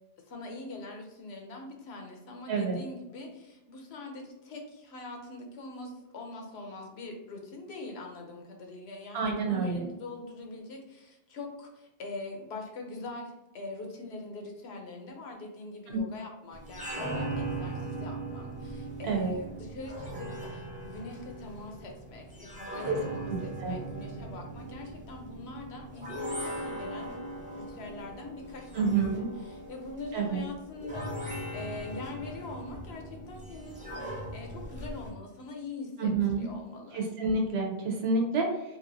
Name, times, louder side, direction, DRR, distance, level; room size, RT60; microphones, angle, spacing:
voice 1, 0.3-27.1 27.5-36.1 36.4-37.0, left 2 dB, 90° left, 2 dB, 0.9 m, -43 dB
voice 2, 9.1-9.8 15.9-16.0 19.0-19.3 22.9-23.0 23.3-23.8 28.7-29.3 30.1-30.4 36.0-36.5 36.9-38.6, right 4 dB, 85° right, 2 dB, 0.9 m, -28 dB
sound 1, 16.5-35.1, right 1 dB, 10° right, 0.7 m, -39 dB
3.0 x 2.5 x 2.6 m, 0.95 s
omnidirectional pair, 1.0 m